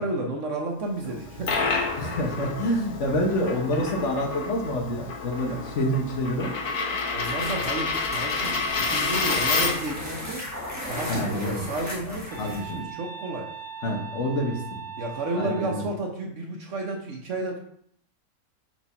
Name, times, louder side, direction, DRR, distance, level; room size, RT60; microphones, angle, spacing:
voice 1, 0.0-1.6 5.5-5.6 7.1-10.4 10.9-13.5 15.0-17.6, right 2 dB, 60° right, 1 dB, 1.2 m, -32 dB
Coin (dropping), 1.1-10.0, left 4 dB, 85° left, 1.5 m, -29 dB
voice 2, 2.0-6.5 11.1-11.7 12.1-12.8 13.8-14.8 15.3-15.9, equal, 55° left, 2 dB, 1.3 m, -27 dB
sound 1, 7.2-12.8, left 1 dB, 10° right, 1.4 m, -36 dB
sound 2, 12.3-15.9, right 7 dB, 35° right, 1.0 m, -40 dB
4.6 x 4.0 x 5.4 m, 0.66 s
omnidirectional pair, 1.5 m